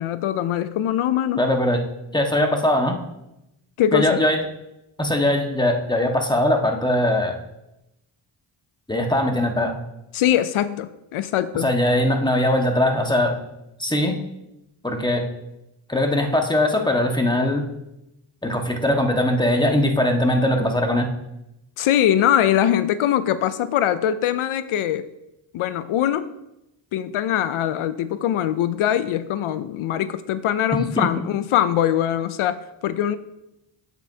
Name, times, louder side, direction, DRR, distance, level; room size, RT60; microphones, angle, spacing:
voice 1, 0.0-1.4 3.8-4.1 10.1-11.7 21.8-25.0 25.5-26.3 26.9-33.2, left 10 dB, 80° left, 13 dB, 0.5 m, -22 dB
voice 2, 1.4-1.8 2.1-3.0 3.9-4.4 5.0-7.4 8.9-9.7 11.6-13.4 13.8-14.2 14.8-15.2 15.9-17.7 18.4-21.1 31.0-31.1, left 1 dB, 10° left, 3 dB, 1.4 m, -20 dB
8.2 x 7.8 x 2.8 m, 0.87 s
cardioid pair, 45°, 49 cm